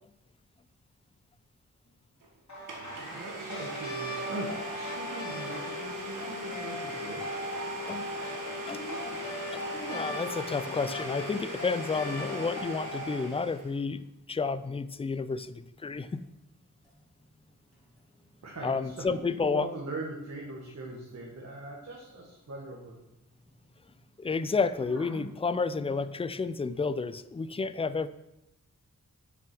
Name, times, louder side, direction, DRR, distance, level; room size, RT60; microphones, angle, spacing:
Domestic sounds home sounds, 2.2-2.3 2.7-13.7, left 1 dB, 85° right, 1.6 m, -39 dB
sound 1, 2.5-13.3, right 1 dB, 60° left, 2.3 m, -40 dB
voice 1, 3.1-7.3 18.4-23.0, right 2 dB, 55° right, -3 dB, 1.6 m, -41 dB
sound 2, 7.7-14.9 15.3-16.2 16.5-26.1, right 1 dB, ahead, 2.7 m, -52 dB
voice 2, 9.9-16.2 18.6-19.7 24.2-28.1, left 4 dB, 20° left, 14 dB, 0.4 m, -31 dB
6.9 x 6.1 x 6.0 m, 0.92 s
wide cardioid pair, 110°, 32 cm